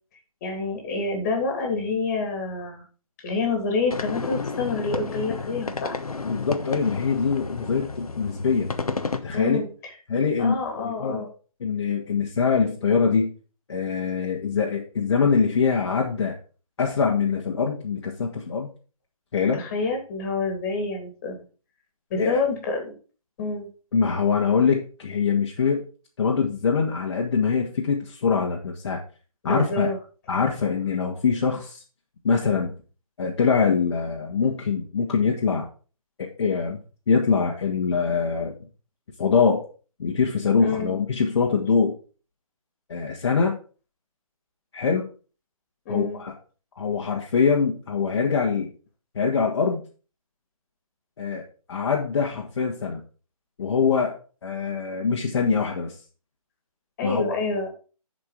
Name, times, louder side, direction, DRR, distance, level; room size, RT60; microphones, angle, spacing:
voice 1, 0.4-2.8 3.2-6.0 9.3-9.7 10.4-11.3 19.5-21.4 22.1-22.9 23.4-23.7 29.4-29.9 40.6-40.9 45.9-46.2 57.0-57.7, left 3 dB, 25° left, 3 dB, 2.8 m, -27 dB
sound 1, 3.9-9.2, left 4 dB, 80° left, 1.2 m, -31 dB
voice 2, 6.2-8.7 9.2-9.6 10.1-11.3 11.6-13.3 13.7-16.3 16.8-18.7 19.3-19.6 22.2-22.4 23.9-25.8 26.2-29.0 29.4-29.9 30.3-31.8 32.2-32.7 33.2-35.7 36.2-36.8 37.1-38.5 39.2-39.6 40.0-41.9 42.9-43.5 44.7-45.0 45.9-46.3 46.8-48.7 49.2-49.8 51.2-53.0 53.6-54.1 54.4-56.0 57.0-57.3, left 5 dB, 45° left, -1 dB, 1.7 m, -23 dB
11.0 x 5.2 x 5.0 m, 0.37 s
figure-of-eight pair, 150°, 19 cm